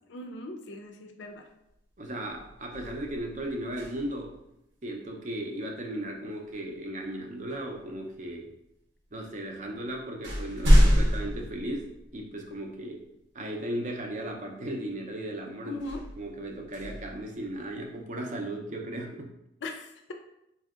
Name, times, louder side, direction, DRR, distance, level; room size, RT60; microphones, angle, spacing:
voice 1, 0.1-1.5 15.6-16.0 19.6-20.1, left 2 dB, 70° left, 5 dB, 0.4 m, -39 dB
sound 1, 1.7-1.9 2.3-4.4 6.5-6.7 7.5-8.3 9.1-9.2 9.6-12.5 13.0-13.1 15.7-17.9, equal, 65° right, 0.8 m, -27 dB
voice 2, 2.0-4.4 4.8-8.5 9.1-13.1 13.3-15.8 16.2-19.3, right 1 dB, 40° right, 2 dB, 0.5 m, -36 dB
4.3 x 2.7 x 2.4 m, 0.85 s
head